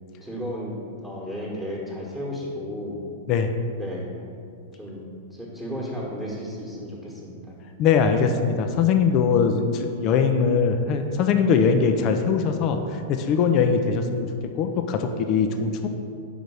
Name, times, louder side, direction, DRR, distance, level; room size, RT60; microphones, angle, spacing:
voice 1, 0.2-3.0 3.8-4.1 4.7-7.6, equal, ahead, -6 dB, 1.4 m, -34 dB
voice 2, 7.8-12.8 13.1-14.3 14.6-15.9, left 6 dB, 40° left, 6 dB, 0.6 m, -21 dB
5.3 x 5.1 x 6.3 m, 2.4 s
figure-of-eight pair, 100°, 0 cm